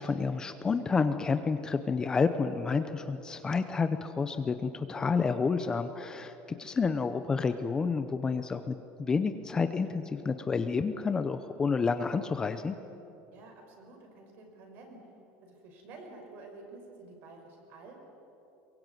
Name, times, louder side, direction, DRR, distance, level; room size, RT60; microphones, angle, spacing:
voice 1, 0.0-6.3 6.6-12.7, left 5 dB, 15° left, 9 dB, 0.7 m, -29 dB
voice 2, 13.3-15.0 15.4-18.0, right 3 dB, 45° right, 3 dB, 5.5 m, -50 dB
23.0 x 22.5 x 9.3 m, 2.9 s
cardioid pair, 170°, 5 cm